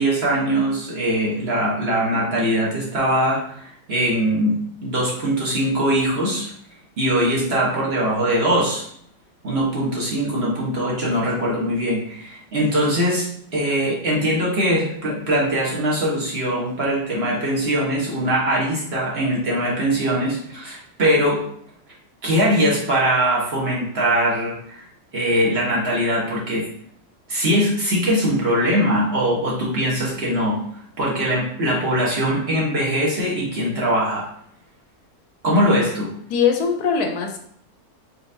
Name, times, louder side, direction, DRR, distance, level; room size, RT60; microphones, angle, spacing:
voice 1, 0.0-6.5 7.0-8.8 9.4-21.4 22.2-24.8 25.1-26.6 27.3-30.6 31.0-34.3 35.4-36.1, equal, 45° right, -5 dB, 1.4 m, -21 dB
voice 2, 36.3-37.4, left 6 dB, 85° left, 4 dB, 1.2 m, -21 dB
4.5 x 3.8 x 2.7 m, 0.67 s
omnidirectional pair, 1.6 m